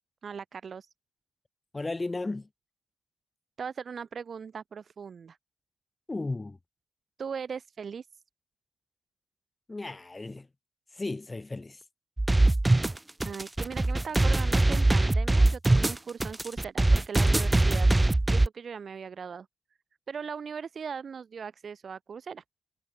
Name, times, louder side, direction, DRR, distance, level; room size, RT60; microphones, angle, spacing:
voice 1, 0.2-0.9 3.6-5.4 7.2-8.1 13.2-17.9 18.3-19.5 20.1-22.4, right 6 dB, 45° right, 1.6 m, -39 dB
voice 2, 1.7-2.5 6.1-6.6 9.7-10.5 10.9-11.8, left 2 dB, 20° left, 2.6 m, -34 dB
sound 1, 12.2-18.5, right 2 dB, 15° right, 1.0 m, -22 dB
cardioid pair, 90°, 0 cm